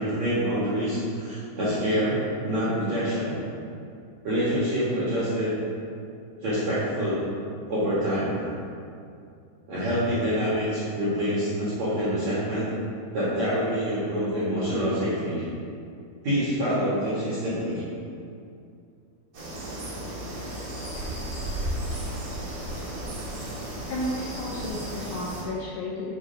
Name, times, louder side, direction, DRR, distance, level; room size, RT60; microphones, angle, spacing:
voice 1, 0.0-3.4 4.2-5.5 6.4-7.2 7.7-8.5 9.7-12.7 13.1-15.5 16.2-17.8, equal, 60° right, -11 dB, 1.9 m, -26 dB
sound 1, 19.3-25.4, right 1 dB, 80° right, 1.2 m, -34 dB
voice 2, 23.9-26.1, left 1 dB, 85° left, -4 dB, 2.3 m, -32 dB
7.5 x 5.0 x 5.1 m, 2.5 s
omnidirectional pair, 5.7 m